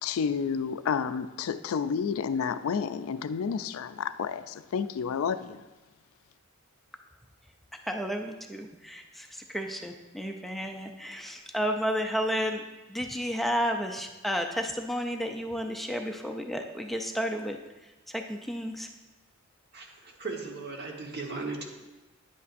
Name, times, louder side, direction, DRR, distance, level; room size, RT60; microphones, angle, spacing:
voice 1, 0.0-5.6, left 6 dB, 75° left, 12 dB, 0.4 m, -30 dB
voice 2, 7.8-12.6 12.9-17.6 17.8-18.9, equal, ahead, 3 dB, 0.4 m, -32 dB
voice 3, 19.7-21.6, right 3 dB, 50° right, 1 dB, 1.2 m, -37 dB
10.0 x 8.3 x 2.5 m, 1.1 s
head